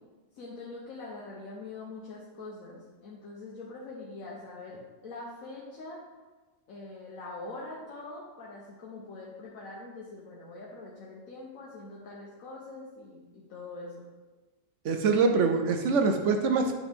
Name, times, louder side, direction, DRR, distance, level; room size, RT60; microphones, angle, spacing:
voice 1, 0.3-6.0 6.7-14.1, left 3 dB, 80° left, -4 dB, 1.3 m, -43 dB
voice 2, 14.8-16.7, right 4 dB, 70° right, 5 dB, 0.9 m, -24 dB
8.4 x 3.7 x 3.4 m, 1.2 s
omnidirectional pair, 1.4 m